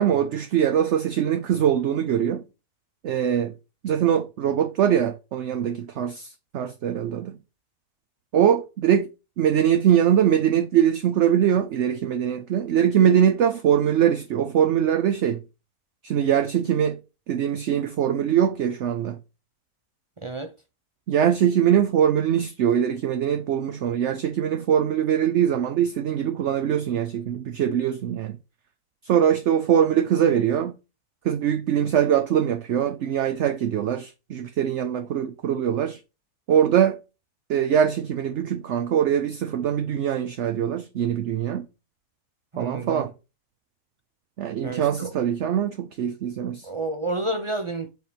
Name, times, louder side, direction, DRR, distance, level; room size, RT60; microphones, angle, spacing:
voice 1, 0.0-2.4 3.0-3.5 3.8-7.4 8.3-9.1 9.4-15.4 16.0-17.0 17.3-19.2 21.1-28.3 29.0-30.8 31.2-36.0 36.5-37.0 37.5-41.7 42.6-43.1 44.4-46.7, right 9 dB, 60° right, 0.8 m, -22 dB
voice 2, 20.2-20.5 42.5-43.1 44.6-45.1 46.6-47.9, right 2 dB, 45° right, 0.4 m, -30 dB
7.1 x 3.5 x 5.9 m
omnidirectional pair, 1.7 m